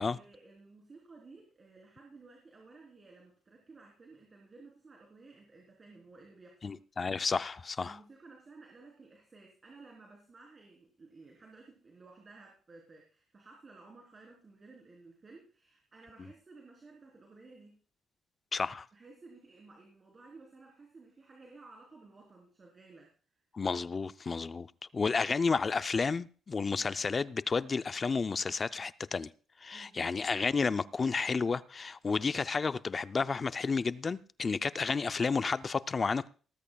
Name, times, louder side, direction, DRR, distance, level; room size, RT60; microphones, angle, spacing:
voice 1, 0.1-6.8 7.8-17.8 18.9-23.1 29.7-30.1, right 3 dB, 35° right, 3.5 m, -55 dB
voice 2, 6.6-8.0 18.5-18.9 23.5-24.7 24.9-29.3 29.6-36.3, left 4 dB, 35° left, 0.5 m, -31 dB
18.5 x 14.0 x 2.3 m
cardioid pair, 90°, 0 cm